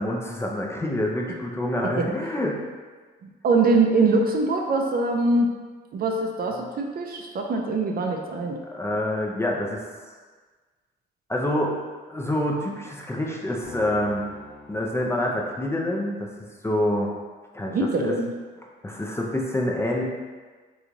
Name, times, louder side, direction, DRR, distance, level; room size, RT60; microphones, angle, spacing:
voice 1, 0.0-2.6 8.7-9.8 11.3-11.8 12.1-14.2 14.7-16.3 16.6-17.2 17.5-18.1 18.8-20.0, left 1 dB, 15° left, -1 dB, 0.5 m, -26 dB
voice 2, 3.2-5.5 5.9-8.6 17.7-18.3, right 3 dB, 50° right, 2 dB, 0.5 m, -23 dB
sound 1, 13.6-16.0, left 2 dB, 45° left, 1.0 m, -45 dB
3.0 x 2.3 x 3.8 m, 1.4 s
cardioid pair, 90°, 20 cm